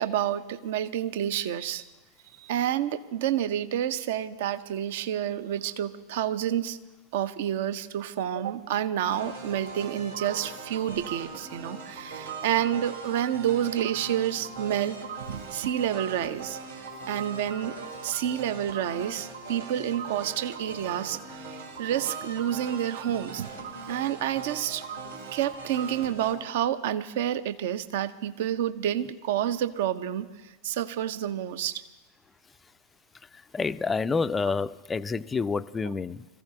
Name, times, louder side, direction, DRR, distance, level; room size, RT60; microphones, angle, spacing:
voice 1, 0.0-1.8 2.4-6.8 7.1-16.6 17.1-17.7 18.0-23.5 23.9-24.8 25.3-31.8, right 10 dB, 55° right, 13 dB, 0.7 m, -29 dB
sound 1, 9.1-26.3, right 4 dB, 70° right, 3.8 m, -40 dB
voice 2, 33.3-36.3, left 4 dB, 15° left, 15 dB, 0.4 m, -28 dB
26.0 x 15.0 x 2.8 m, 1.1 s
figure-of-eight pair, 90°, 0 cm